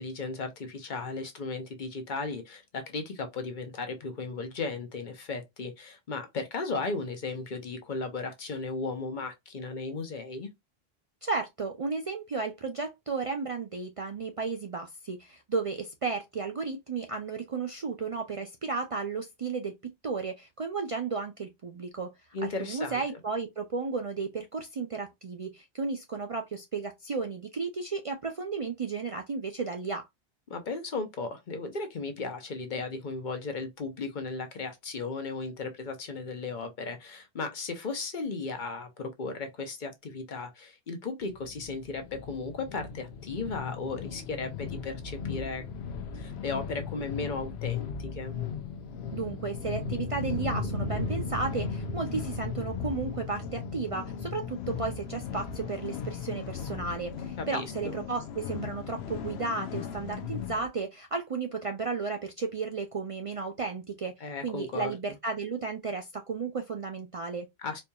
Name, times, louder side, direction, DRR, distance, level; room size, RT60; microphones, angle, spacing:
voice 1, 0.0-10.5 22.3-23.2 30.5-45.6 46.1-48.4 57.4-57.9 64.2-64.9 67.6-67.8, left 3 dB, 50° left, 0.9 m, -35 dB
voice 2, 11.2-22.1 22.4-30.1 49.1-67.5, right 4 dB, 45° right, 0.4 m, -34 dB
sound 1, 41.2-60.7, left 8 dB, 75° left, 0.9 m, -38 dB
sound 2, 47.7-57.7, left 2 dB, 75° right, 1.7 m, -38 dB
4.4 x 2.8 x 2.2 m
omnidirectional pair, 1.1 m